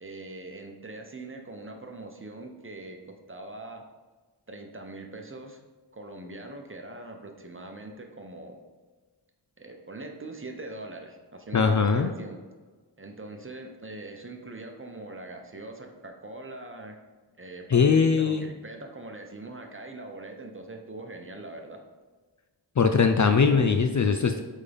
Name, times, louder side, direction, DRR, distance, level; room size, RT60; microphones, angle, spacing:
voice 1, 0.0-3.0 3.3-3.8 4.5-5.6 5.9-8.6 9.6-12.4 13.0-16.9 17.4-21.8, right 2 dB, 30° right, 3 dB, 0.8 m, -42 dB
voice 2, 11.5-12.1 17.7-18.5 22.8-24.4, left 5 dB, 45° left, 7 dB, 0.4 m, -21 dB
8.3 x 3.7 x 3.5 m, 1.3 s
wide cardioid pair, 85°, 45 cm